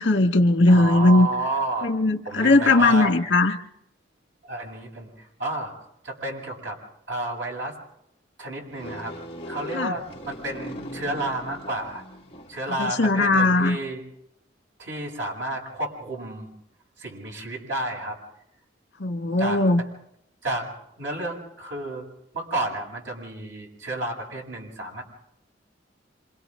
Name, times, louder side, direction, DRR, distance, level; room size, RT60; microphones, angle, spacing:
voice 1, 0.0-1.3 1.8-3.6 9.7-10.0 12.8-13.8 19.0-19.8, left 2 dB, 75° left, 5 dB, 1.7 m, -19 dB
voice 2, 0.7-1.9 2.2-3.1 4.4-5.7 6.0-6.8 7.1-7.7 8.4-9.2 9.5-12.0 12.5-14.0 14.8-16.5 17.0-18.2 19.4-19.6 20.4-22.1 22.3-25.0, right 2 dB, 85° right, 0 dB, 7.6 m, -31 dB
sound 1, 8.7-12.8, equal, 30° left, 2.1 m, -39 dB
27.5 x 27.5 x 3.8 m, 0.75 s
head